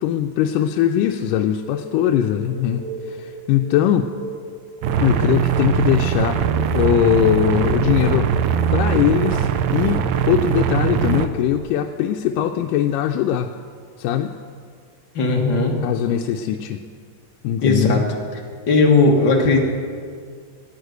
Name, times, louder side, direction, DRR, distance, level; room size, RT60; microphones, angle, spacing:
voice 1, 0.0-4.1 5.0-6.4 6.7-8.3 8.7-13.5 14.0-14.3 15.8-16.8 17.4-18.0, left 10 dB, 90° left, 4 dB, 2.2 m, -20 dB
sound 1, 1.6-11.6, right 2 dB, 15° right, 2.3 m, -35 dB
sound 2, 4.8-11.3, right 8 dB, 80° right, 1.6 m, -21 dB
voice 2, 15.1-15.8 17.6-18.0 18.7-19.6, left 3 dB, 50° left, 0 dB, 1.6 m, -16 dB
11.5 x 10.5 x 8.0 m, 2.1 s
omnidirectional pair, 3.7 m